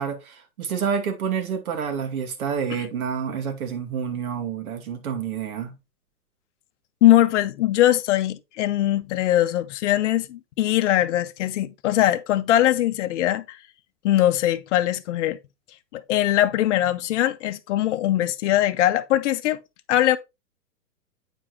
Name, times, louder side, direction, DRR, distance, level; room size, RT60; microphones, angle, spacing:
voice 1, 0.0-5.7, right 7 dB, 60° right, 2.3 m, -28 dB
voice 2, 7.0-13.6 14.0-15.4 15.9-19.6 19.9-20.2, left 13 dB, 50° left, 0.8 m, -21 dB
8.8 x 4.8 x 3.2 m
figure-of-eight pair, 110°, 48 cm